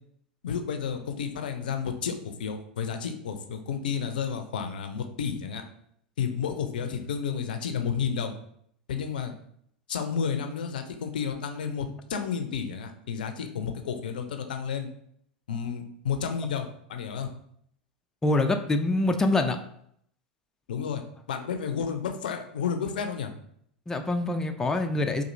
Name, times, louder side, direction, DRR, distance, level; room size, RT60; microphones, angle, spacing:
voice 1, 0.4-5.6 6.2-8.3 8.9-9.3 9.9-14.9 15.5-17.3 20.7-21.0 21.3-23.3, left 7 dB, 75° left, 6 dB, 0.5 m, -31 dB
voice 2, 18.2-19.6 23.9-25.2, left 2 dB, 10° left, 6 dB, 0.4 m, -25 dB
4.1 x 2.5 x 2.6 m, 0.68 s
hypercardioid pair, 85°, 5 cm